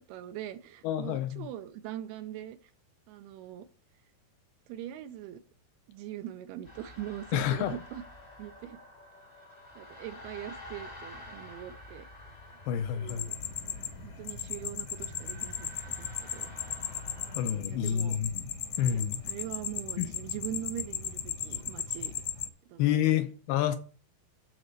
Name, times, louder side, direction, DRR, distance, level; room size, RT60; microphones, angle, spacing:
voice 1, 0.0-2.7 3.1-3.7 4.7-5.4 5.9-8.0 8.4-8.8 9.8-12.1 12.9-13.4 13.7-15.7 16.0-16.5 17.6-18.2 18.9-22.1 22.7-23.3, right 12 dB, 85° right, 2.3 m, -42 dB
voice 2, 0.8-1.5 7.3-7.8 12.7-13.3 17.4-18.5 18.8-19.2 20.0-20.1 22.8-23.8, left 10 dB, 80° left, 2.3 m, -29 dB
sound 1, 6.6-17.4, left 1 dB, 35° left, 1.0 m, -49 dB
sound 2, 13.1-22.5, left 9 dB, 65° left, 1.9 m, -37 dB
12.0 x 4.1 x 6.6 m
omnidirectional pair, 5.1 m